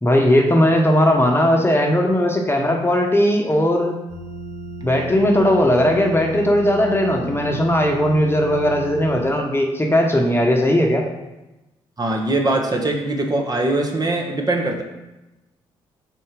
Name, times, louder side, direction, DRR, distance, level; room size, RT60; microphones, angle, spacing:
voice 1, 0.0-4.0 4.8-11.0, left 1 dB, 20° left, 1 dB, 1.1 m, -18 dB
sound 1, 4.1-9.3, right 2 dB, 85° right, 0.9 m, -34 dB
voice 2, 12.0-14.8, right 2 dB, 30° right, 2 dB, 1.2 m, -21 dB
4.6 x 4.3 x 5.1 m, 1.0 s
hypercardioid pair, 50°, 13 cm